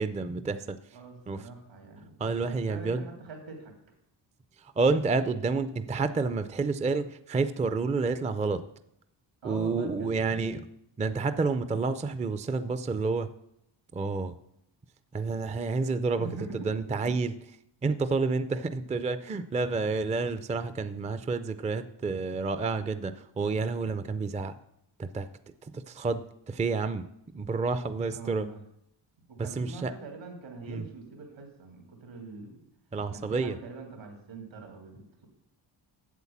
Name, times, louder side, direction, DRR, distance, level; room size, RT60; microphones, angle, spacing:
voice 1, 0.0-0.8 1.3-1.5 2.2-3.0 4.8-8.6 9.4-10.6 11.0-13.3 13.9-14.4 15.1-17.3 17.8-24.5 25.0-25.3 25.7-27.1 27.3-28.5 29.4-29.9 30.6-30.9 32.9-33.6, right 4 dB, 15° right, 12 dB, 0.4 m, -29 dB
voice 2, 0.9-3.7 9.4-10.5 16.2-16.7 17.0-17.2 28.1-28.6 29.3-32.6 33.1-35.3, right 3 dB, 80° right, 2 dB, 3.2 m, -43 dB
8.2 x 7.9 x 7.2 m, 0.78 s
cardioid pair, 110°, 45 cm